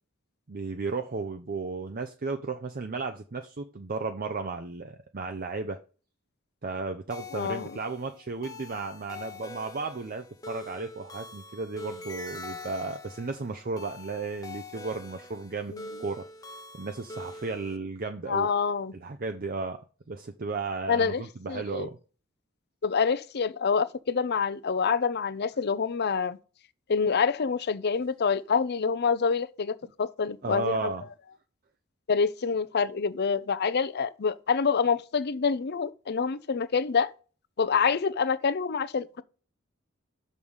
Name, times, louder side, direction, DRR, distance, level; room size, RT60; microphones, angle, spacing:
voice 1, 0.5-5.8 6.6-16.3 16.7-18.5 18.9-19.8 20.1-22.0 30.4-31.0, right 4 dB, 45° right, 0.6 m, -34 dB
sound 1, 7.1-17.8, left 2 dB, 15° left, 0.8 m, -44 dB
voice 2, 7.3-7.7 15.7-15.9 18.3-18.9 20.9-21.9 22.8-26.4 26.9-30.9 32.1-37.1 37.6-39.1, left 5 dB, 50° left, 0.6 m, -27 dB
6.4 x 5.3 x 5.5 m
head